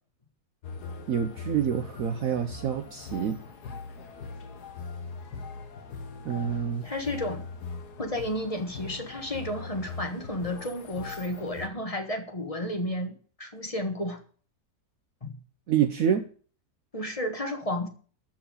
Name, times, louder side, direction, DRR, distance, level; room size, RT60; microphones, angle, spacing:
sound 1, 0.6-11.7, left 4 dB, 70° left, 1.9 m, -41 dB
voice 1, 1.1-3.4 6.2-6.8 15.7-16.3, right 8 dB, 60° right, 8 dB, 1.1 m, -27 dB
voice 2, 6.8-7.4 8.0-14.2 15.2-15.4 16.9-17.9, left 1 dB, 20° left, 5 dB, 1.4 m, -32 dB
13.5 x 4.6 x 8.8 m, 0.43 s
omnidirectional pair, 1.8 m